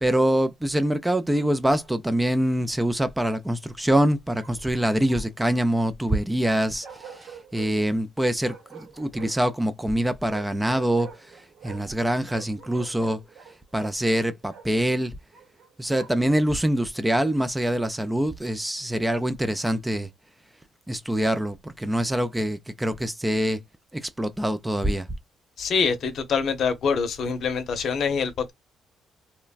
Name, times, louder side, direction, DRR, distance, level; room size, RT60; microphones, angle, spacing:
voice 1, 0.0-6.9 7.5-11.1 11.6-13.2 13.7-15.1 15.8-20.1 20.9-23.6 24.2-25.1, right 1 dB, 10° right, 0.4 m, -24 dB
Bark, 1.3-1.9 4.4-5.5 6.8-7.7 8.4-9.5 10.3-12.0 12.3-14.7 15.3-16.3, right 7 dB, 75° right, 1.2 m, -46 dB
voice 2, 25.6-28.5, left 5 dB, 65° left, 0.7 m, -25 dB
3.0 x 2.2 x 2.3 m
cardioid pair, 90°, 0 cm